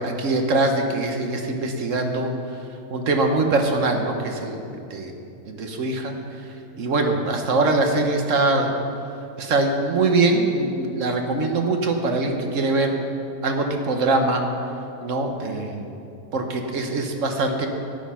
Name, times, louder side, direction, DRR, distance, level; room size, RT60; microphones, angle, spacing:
voice 1, 0.0-2.3 2.9-4.6 4.9-5.1 5.5-6.1 6.8-8.7 9.4-13.0 13.4-14.4 15.0-16.0 16.3-17.7, right 2 dB, 60° right, 4 dB, 1.3 m, -22 dB
12.5 x 9.5 x 5.7 m, 2.6 s
omnidirectional pair, 1.6 m